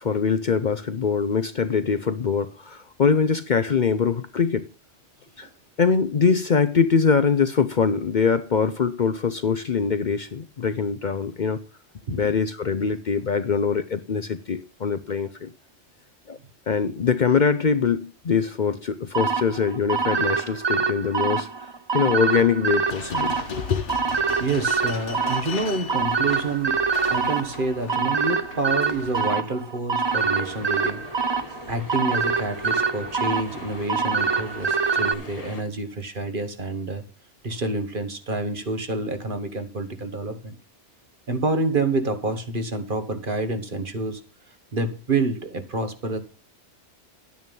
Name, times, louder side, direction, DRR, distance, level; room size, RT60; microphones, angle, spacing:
voice 1, 0.0-4.6 5.4-5.5 5.8-11.6 12.1-15.5 16.3-16.4 16.7-21.5 21.9-23.8, left 5 dB, 50° left, 0.7 m, -23 dB
sound 1, 19.1-35.1, right 5 dB, 30° right, 0.6 m, -25 dB
sound 2, 22.9-29.3, left 5 dB, 85° left, 1.7 m, -38 dB
voice 2, 24.4-31.0 31.7-37.0 37.4-40.5 41.3-44.2 44.7-46.2, right 3 dB, 50° right, 1.6 m, -28 dB
sound 3, 30.0-35.6, left 2 dB, 35° left, 1.6 m, -41 dB
11.0 x 9.6 x 5.4 m
omnidirectional pair, 1.2 m